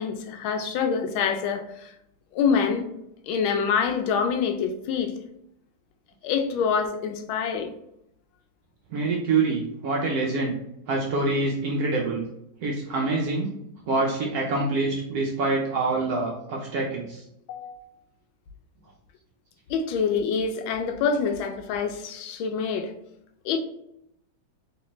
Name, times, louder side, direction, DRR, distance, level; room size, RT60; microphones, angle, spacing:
voice 1, 0.0-1.9 2.3-2.8 3.3-5.1 6.2-7.7 17.5-17.8 19.7-22.9 23.4-23.6, left 6 dB, 90° left, 5 dB, 1.4 m, -26 dB
voice 2, 8.9-10.6 10.9-12.2 12.6-13.5 13.9-17.2, right 3 dB, 70° right, -1 dB, 0.9 m, -26 dB
3.2 x 3.1 x 3.0 m, 0.79 s
omnidirectional pair, 2.1 m